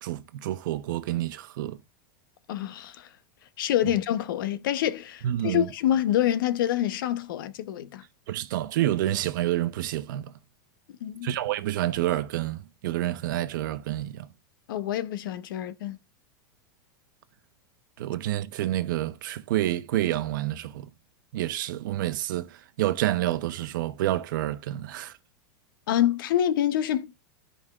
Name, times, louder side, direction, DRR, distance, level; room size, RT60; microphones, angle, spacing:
voice 1, 0.0-1.8 3.8-3.9 5.2-5.7 8.3-10.3 11.2-14.3 18.0-20.9 21.3-25.1, right 14 dB, 65° right, 0.9 m, -28 dB
voice 2, 2.5-3.1 3.6-8.0 11.0-11.3 14.7-16.0 25.9-27.1, left 11 dB, 70° left, 0.9 m, -26 dB
13.0 x 5.1 x 2.4 m
supercardioid pair, 170°, 12 cm